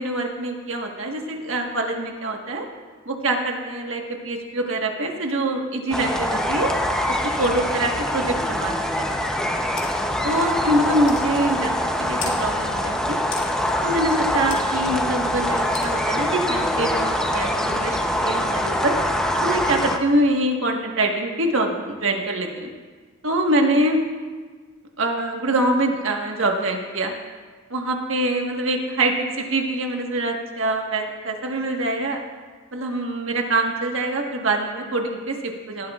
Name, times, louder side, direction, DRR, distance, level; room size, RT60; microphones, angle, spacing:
voice 1, 0.0-2.7 3.0-6.7 7.1-9.2 10.2-13.2 13.8-18.9 19.4-22.7 23.2-24.0 25.0-27.1 27.7-32.2 32.7-35.9, right 1 dB, 75° right, 2 dB, 1.5 m, -24 dB
sound 1, 5.9-20.0, left 1 dB, 5° left, 0.7 m, -24 dB
sound 2, 9.8-9.9 10.5-10.6 11.1-11.3 12.2-12.4 13.3-13.5 14.5-14.6 15.7-15.9, left 7 dB, 65° left, 2.1 m, -33 dB
18.5 x 14.0 x 2.4 m, 1.4 s
head